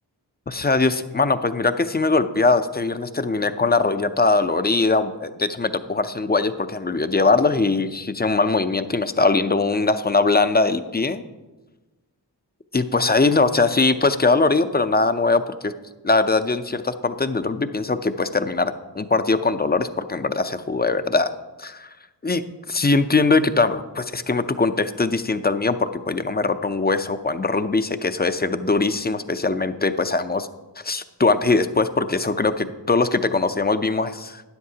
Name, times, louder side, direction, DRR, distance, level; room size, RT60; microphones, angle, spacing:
voice 1, 0.5-11.2 12.7-15.7 16.0-21.9 22.2-22.4 22.7-30.5 30.8-34.4, left 3 dB, 25° left, 11 dB, 0.6 m, -21 dB
12.5 x 9.8 x 2.8 m, 1.2 s
cardioid pair, 50°, 43 cm